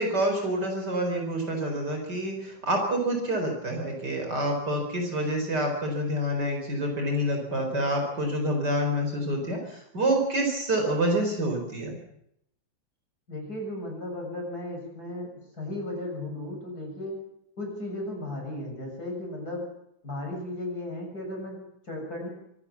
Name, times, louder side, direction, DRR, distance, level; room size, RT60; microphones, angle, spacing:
voice 1, 0.0-11.9, right 1 dB, 55° right, 2 dB, 5.2 m, -27 dB
voice 2, 13.3-17.2 17.6-19.7 20.0-22.3, left 1 dB, 50° left, 1 dB, 7.8 m, -35 dB
24.5 x 18.0 x 7.3 m, 0.76 s
omnidirectional pair, 2.1 m